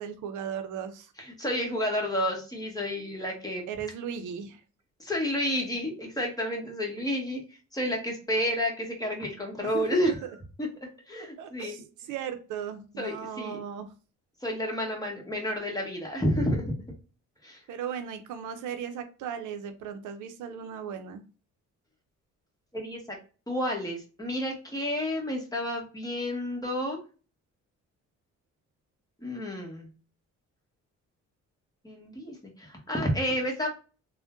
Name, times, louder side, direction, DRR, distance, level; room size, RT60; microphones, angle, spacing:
voice 1, 0.0-1.1 3.7-4.6 9.6-10.3 11.4-13.9 17.7-21.2, right 8 dB, 80° right, 8 dB, 0.6 m, -37 dB
voice 2, 1.2-3.7 5.0-7.4 7.7-10.2 10.6-10.7 11.1-11.8 13.0-13.6 14.4-16.7 17.4-17.6 22.7-23.2 23.5-27.0 29.2-29.9 31.8-33.7, equal, 10° left, 0 dB, 1.1 m, -30 dB
3.5 x 2.1 x 2.5 m, 0.36 s
cardioid pair, 90°, 30 cm